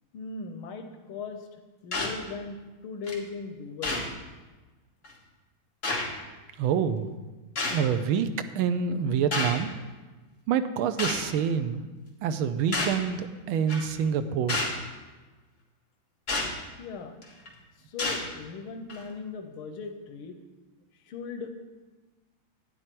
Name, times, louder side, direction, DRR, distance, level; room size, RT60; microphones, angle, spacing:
voice 1, 0.1-1.5 1.8-4.1 16.8-17.2 17.9-20.4 21.1-21.5, left 4 dB, 85° left, 6 dB, 1.7 m, -38 dB
sound 1, 1.9-2.2 3.1-3.2 3.8-4.1 5.0-5.1 5.8-6.0 7.6-7.8 9.3-9.6 11.0-11.2 12.7-13.0 13.7-13.9 14.5-14.8 16.3-16.5 17.2-17.5 18.0-18.2 18.9-19.0, left 2 dB, 40° left, 2.0 m, -29 dB
voice 2, 6.6-7.1 7.7-9.7 10.5-11.9 12.2-14.6, right 7 dB, 90° right, 10 dB, 1.5 m, -27 dB
11.0 x 9.8 x 4.5 m, 1.2 s
omnidirectional pair, 2.2 m